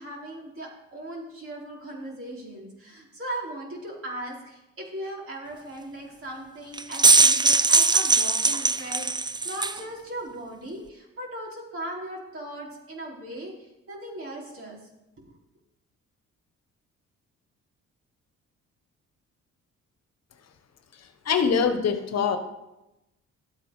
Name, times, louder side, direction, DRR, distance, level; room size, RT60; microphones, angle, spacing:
voice 1, 0.0-14.8 15.2-15.3, right 1 dB, 45° right, -3 dB, 4.6 m, -38 dB
sound 1, 6.7-9.8, right 3 dB, 15° right, 0.5 m, -20 dB
voice 2, 21.2-22.4, left 6 dB, 60° left, 9 dB, 1.3 m, -23 dB
12.5 x 8.5 x 4.9 m, 0.93 s
cardioid pair, 90°, 30 cm